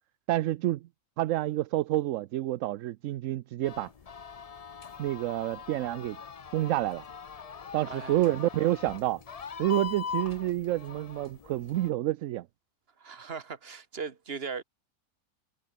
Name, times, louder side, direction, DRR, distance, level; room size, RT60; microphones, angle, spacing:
voice 1, 0.3-0.9 1.2-3.9 5.0-6.2 6.5-7.0 7.7-9.2 9.6-12.5, right 15 dB, 70° right, 0.8 m, -28 dB
sound 1, 3.6-11.9, left 6 dB, 45° left, 0.4 m, -41 dB
voice 2, 13.0-14.6, right 5 dB, 40° right, 1.7 m, -38 dB
omnidirectional pair, 1.6 m